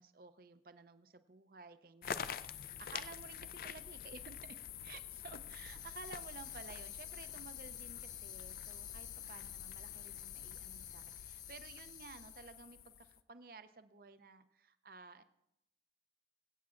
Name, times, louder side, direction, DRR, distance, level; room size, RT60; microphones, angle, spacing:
voice 1, 0.0-15.2, right 4 dB, 55° right, 12 dB, 0.5 m, -54 dB
sound 1, 2.0-13.2, left 9 dB, 50° left, 0.3 m, -46 dB
Tambourine, 5.5-12.6, left 3 dB, 20° left, 0.9 m, -60 dB
22.5 x 8.5 x 2.5 m, 0.85 s
head